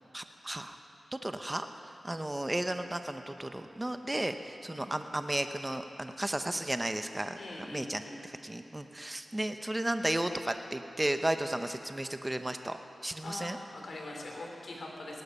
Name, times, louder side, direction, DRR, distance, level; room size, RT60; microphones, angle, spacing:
voice 1, 0.1-0.8 1.1-12.8 13.0-13.6, right 1 dB, 20° right, 8 dB, 0.8 m, -34 dB
voice 2, 7.4-8.2 13.2-15.2, left 2 dB, 70° left, 0 dB, 3.2 m, -43 dB
18.0 x 12.0 x 5.6 m, 2.6 s
cardioid pair, 45°, 0 cm